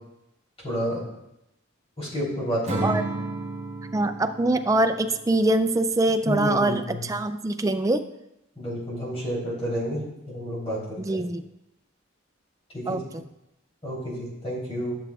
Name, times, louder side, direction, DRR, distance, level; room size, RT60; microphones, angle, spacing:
voice 1, 0.6-1.0 2.0-3.0 6.2-7.0 8.6-10.8 11.1-11.2 12.7-13.0 13.8-15.0, equal, 30° left, -7 dB, 3.3 m, -30 dB
Acoustic guitar / Strum, 2.7-6.0, right 2 dB, 35° right, 1.3 m, -33 dB
voice 2, 3.9-8.0 11.0-11.4 12.9-13.2, right 2 dB, 15° right, 9 dB, 0.3 m, -24 dB
13.5 x 7.1 x 2.3 m, 0.87 s
head